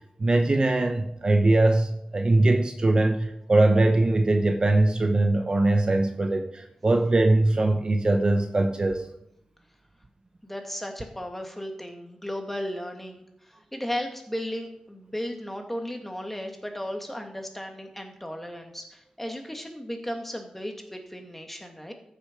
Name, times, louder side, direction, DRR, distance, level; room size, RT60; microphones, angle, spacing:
voice 1, 0.2-9.1, right 2 dB, 40° right, 5 dB, 1.0 m, -21 dB
voice 2, 10.4-21.9, equal, 10° left, 3 dB, 1.9 m, -35 dB
14.0 x 6.8 x 5.1 m, 0.77 s
wide cardioid pair, 85°, 2 cm